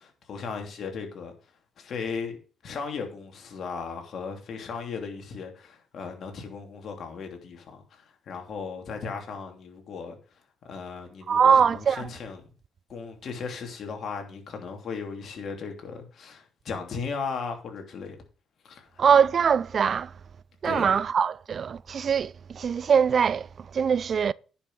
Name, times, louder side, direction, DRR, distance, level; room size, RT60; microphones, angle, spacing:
voice 1, 0.0-1.3 1.8-2.4 2.6-10.2 10.6-12.4 12.9-18.2 18.6-19.0 20.6-21.0, left 5 dB, 60° left, 2.9 m, -36 dB
voice 2, 11.3-12.1 19.0-20.1 20.6-24.3, right 7 dB, 55° right, 0.4 m, -22 dB
9.9 x 6.0 x 6.3 m
supercardioid pair, 70°, 0 cm